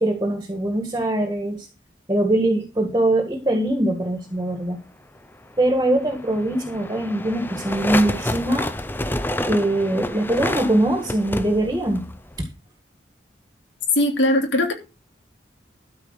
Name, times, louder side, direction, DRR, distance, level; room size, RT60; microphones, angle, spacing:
voice 1, 0.0-1.7 2.1-4.8 5.6-8.7 9.5-12.0, right 1 dB, 20° right, 1.7 m, -22 dB
sound 1, 5.6-12.4, left 1 dB, 10° left, 0.6 m, -29 dB
voice 2, 13.9-14.7, left 1 dB, 75° left, 3.1 m, -19 dB
13.0 x 5.0 x 6.6 m
head